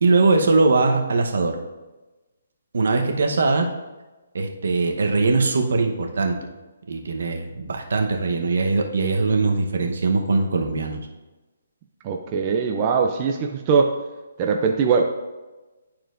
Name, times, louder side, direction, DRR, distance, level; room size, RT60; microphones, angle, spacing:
voice 1, 0.0-1.6 2.7-3.7 4.3-6.4 6.9-11.0, right 3 dB, 70° right, 4 dB, 0.9 m, -21 dB
voice 2, 12.0-13.9 14.4-15.0, right 5 dB, 25° right, 3 dB, 0.4 m, -21 dB
11.5 x 4.4 x 2.5 m, 1.2 s
hypercardioid pair, 165°, 0 cm